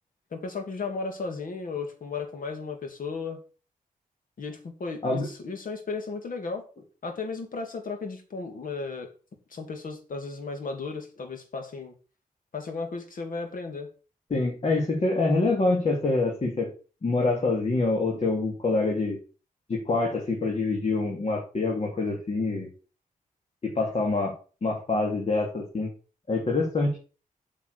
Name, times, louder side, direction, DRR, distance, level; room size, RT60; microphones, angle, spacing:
voice 1, 0.3-3.4 4.4-6.6 7.0-9.1 9.5-11.9 12.5-13.9, left 4 dB, 70° left, 5 dB, 2.8 m, -35 dB
voice 2, 14.3-16.7 17.0-19.2 19.7-22.7 23.6-24.4 24.6-25.9 26.3-27.0, left 3 dB, 45° left, 0 dB, 2.8 m, -26 dB
8.8 x 5.9 x 6.8 m, 0.36 s
wide cardioid pair, 120°, 15 cm